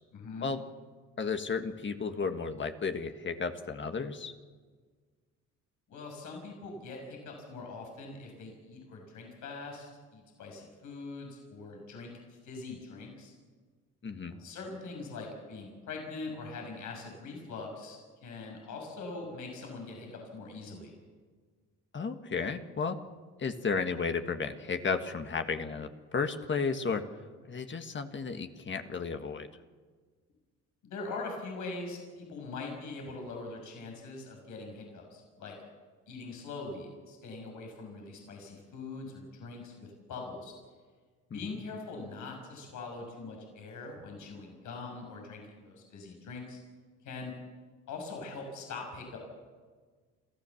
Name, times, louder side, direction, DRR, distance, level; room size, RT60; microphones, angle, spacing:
voice 1, 0.1-0.5 5.9-13.3 14.2-20.9 30.8-35.6 36.1-40.5 41.3-46.6 47.0-47.3 47.9-49.2, left 3 dB, 80° left, 2 dB, 6.2 m, -42 dB
voice 2, 1.2-4.3 14.0-14.4 21.9-23.0 23.4-27.0 27.5-29.5 41.3-41.6, left 5 dB, 40° left, 7 dB, 1.7 m, -33 dB
28.0 x 14.5 x 7.2 m, 1.5 s
cardioid pair, 90°, 30 cm